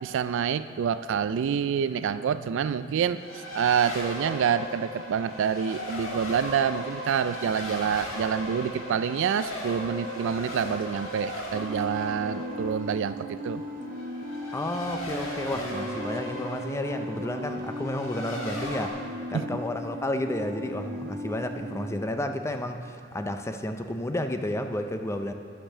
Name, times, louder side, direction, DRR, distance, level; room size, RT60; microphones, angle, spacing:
voice 1, 0.0-3.2 3.5-13.6 19.3-19.5, right 7 dB, 65° right, 13 dB, 0.3 m, -27 dB
Race car auto racing, 3.2-18.9, left 1 dB, 75° left, 1.6 m, -37 dB
sound 1, 11.5-21.9, equal, 45° right, 0.7 m, -37 dB
voice 2, 14.5-25.3, left 1 dB, 15° left, 7 dB, 0.4 m, -31 dB
8.8 x 6.7 x 6.6 m, 2.7 s
head